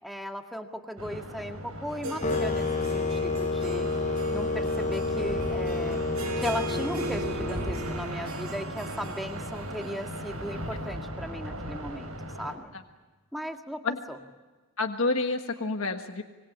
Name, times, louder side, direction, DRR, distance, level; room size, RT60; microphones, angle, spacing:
voice 1, 0.0-3.9 4.3-6.0 6.4-12.1 12.4-12.7 13.3-14.2, equal, ahead, 4 dB, 1.9 m, -37 dB
sound 1, 1.0-12.5, equal, 90° right, 5.7 m, -38 dB
Harp, 1.9-10.9, right 3 dB, 75° right, 2.5 m, -40 dB
sound 2, 2.2-8.3, left 3 dB, 35° left, 0.7 m, -30 dB
voice 2, 14.8-16.2, left 3 dB, 70° left, 5 dB, 1.5 m, -29 dB
25.5 x 22.0 x 8.5 m, 1.3 s
head